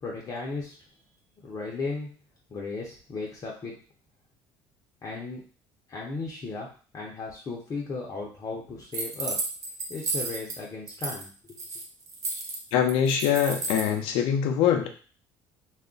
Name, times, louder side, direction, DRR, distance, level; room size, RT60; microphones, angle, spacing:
voice 1, 0.0-0.9 1.4-2.1 2.5-3.8 5.0-5.4 5.9-6.7 6.9-9.4 9.9-11.6, left 3 dB, 35° left, -2 dB, 0.7 m, -35 dB
sound 1, 8.9-10.6 10.9-11.2 11.5-13.9, right 3 dB, 35° right, 0.7 m, -32 dB
voice 2, 12.7-14.9, left 8 dB, 80° left, 5 dB, 0.5 m, -23 dB
2.4 x 2.1 x 3.7 m, 0.39 s
cardioid pair, 100°, 9 cm